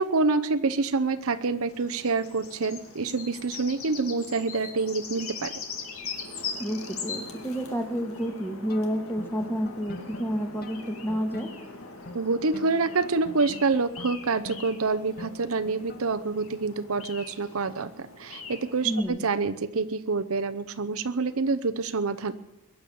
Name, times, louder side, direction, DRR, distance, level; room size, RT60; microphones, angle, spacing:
voice 1, 0.0-5.5 12.1-22.3, right 4 dB, 70° right, 9 dB, 0.8 m, -27 dB
sound 1, 0.8-19.0, left 4 dB, 65° left, 2.2 m, -41 dB
voice 2, 6.6-11.5 18.8-19.2, equal, 10° left, 4 dB, 1.7 m, -30 dB
sound 2, 8.7-16.3, left 2 dB, 45° left, 1.1 m, -46 dB
22.0 x 9.2 x 7.0 m, 0.92 s
head